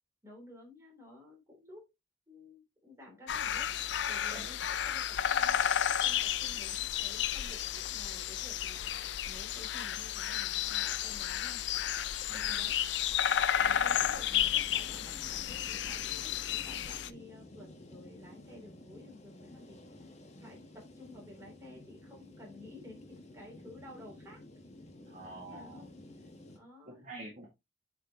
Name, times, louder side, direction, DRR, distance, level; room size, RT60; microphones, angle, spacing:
voice 1, 0.2-1.9 2.3-3.7 4.1-8.9 9.3-11.7 12.4-12.8 13.6-19.8 20.4-24.4 25.5-25.9 26.2-26.3 26.5-27.0, left 1 dB, 15° right, 2.9 m, -53 dB
sound 1, 3.3-17.1, left 10 dB, 70° left, 0.4 m, -32 dB
voice 2, 12.3-12.6 25.1-25.8 26.9-27.5, right 2 dB, 40° right, 1.6 m, -47 dB
sound 2, 13.6-26.6, left 1 dB, 40° left, 1.1 m, -52 dB
7.3 x 4.7 x 2.8 m
head